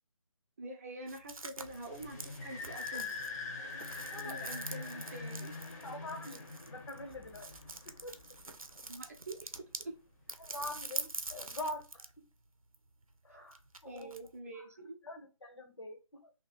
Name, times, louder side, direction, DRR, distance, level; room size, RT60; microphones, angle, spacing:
voice 1, 0.6-3.2 3.9-5.5 8.8-9.5 9.8-10.0 13.3-13.5 13.8-15.0, right 2 dB, 25° right, 0.7 m, -46 dB
sound 1, 1.1-9.9 10.3-12.2 12.4-14.3, right 3 dB, 90° right, 0.7 m, -45 dB
sound 2, 1.6-8.9, left 4 dB, 30° left, 1.0 m, -44 dB
voice 2, 3.9-4.6 5.3-5.4 5.8-7.5 7.8-8.4 10.4-12.3 13.2-14.2 14.5-14.7 15.0-16.3, left 1 dB, 55° left, 1.2 m, -45 dB
2.9 x 2.7 x 4.0 m
figure-of-eight pair, 155°, 17 cm